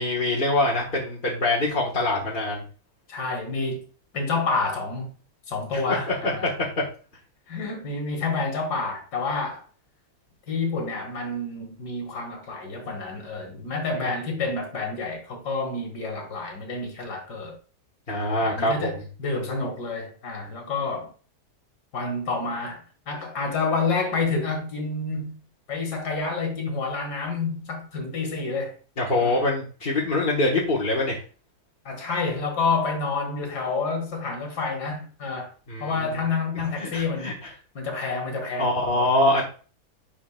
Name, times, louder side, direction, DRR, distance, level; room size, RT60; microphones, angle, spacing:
voice 1, 0.0-2.6 5.7-6.8 18.1-18.9 29.0-31.2 35.7-36.2 36.8-37.3 38.6-39.4, left 2 dB, 35° left, 1.4 m, -24 dB
voice 2, 3.1-3.8 4.1-5.1 5.5-6.5 7.5-9.6 10.5-17.5 18.4-21.1 21.9-25.4 25.7-28.8 29.2-29.4 31.9-35.5 35.8-37.4 37.7-39.1, left 3 dB, 75° left, 2.4 m, -29 dB
10.5 x 4.7 x 2.3 m
omnidirectional pair, 1.8 m